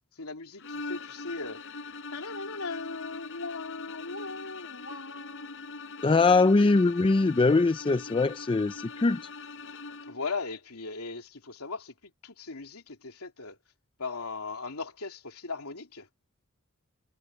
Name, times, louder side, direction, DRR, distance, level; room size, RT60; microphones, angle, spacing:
voice 1, 0.1-1.6 2.1-6.0 6.6-6.7 10.0-13.6 14.0-16.1, left 3 dB, 85° left, 3.0 m, -38 dB
sound 1, 0.6-10.3, left 3 dB, 60° left, 5.0 m, -42 dB
voice 2, 6.0-9.2, left 3 dB, 25° left, 0.4 m, -22 dB
head